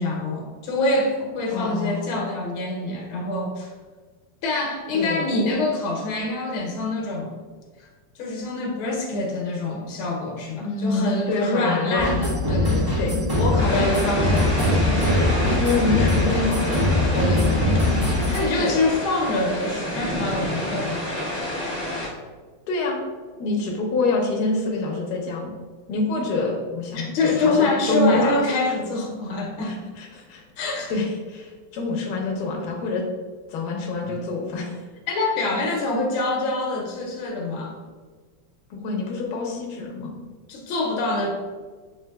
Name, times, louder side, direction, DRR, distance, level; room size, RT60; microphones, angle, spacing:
voice 1, 0.0-3.7 4.4-7.4 7.8-7.9 8.1-13.0 13.4-14.9 17.1-17.6 18.3-21.1 26.9-29.8 30.6-30.9 34.0-34.2 35.1-37.8 40.5-41.3, left 2 dB, 80° left, 0 dB, 1.6 m, -25 dB
voice 2, 1.5-2.3 4.9-5.3 10.6-12.2 13.0-13.2 13.5-13.9 15.6-17.2 18.6-18.8 22.7-23.0 23.4-25.5 25.9-28.4 29.6-30.4 30.9-33.0 33.5-34.8 38.7-40.1, left 3 dB, 65° left, -1 dB, 1.2 m, -26 dB
sound 1, 12.0-18.4, left 1 dB, 15° right, 0.8 m, -22 dB
sound 2, 13.6-22.1, left 1 dB, 30° left, 0.6 m, -29 dB
5.7 x 3.4 x 2.2 m, 1.4 s
omnidirectional pair, 2.2 m